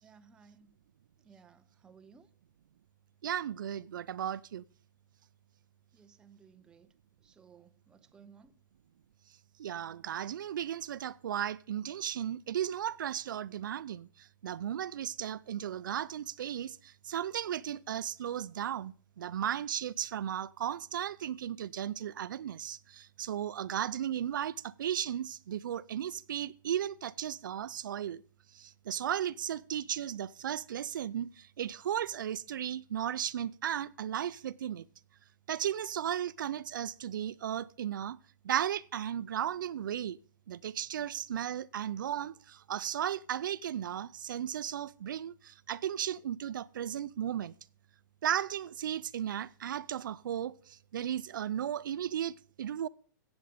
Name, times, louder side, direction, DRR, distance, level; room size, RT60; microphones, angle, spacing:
voice 1, 0.0-0.7 1.2-2.3 5.9-6.9 7.2-8.5, right 6 dB, 5° right, 0.5 m, -59 dB
voice 2, 3.2-4.6 9.6-28.2 28.5-34.9 35.5-38.2 38.4-40.2 40.5-47.5 48.2-52.9, right 10 dB, 70° right, 0.5 m, -35 dB
15.5 x 8.0 x 5.0 m
hypercardioid pair, 160°, 11 cm